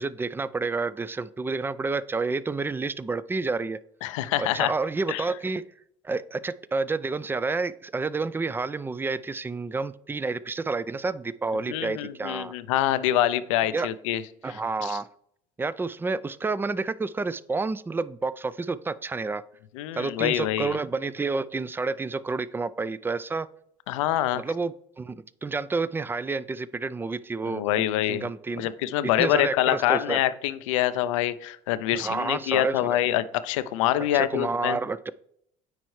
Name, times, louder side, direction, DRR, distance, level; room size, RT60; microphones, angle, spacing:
voice 1, 0.0-3.8 4.4-5.6 6.0-12.5 13.7-13.9 14.4-15.1 15.6-19.4 19.9-23.5 24.3-27.6 28.1-28.7 29.2-30.2 31.9-33.0 34.1-35.1, right 3 dB, 15° right, 18 dB, 0.3 m, -29 dB
voice 2, 4.0-4.7 5.1-5.2 11.7-15.0 19.8-20.8 23.9-24.4 27.5-28.3 28.6-34.8, left 13 dB, 85° left, 14 dB, 0.4 m, -26 dB
9.4 x 4.6 x 3.1 m, 0.71 s
hypercardioid pair, 70°, 16 cm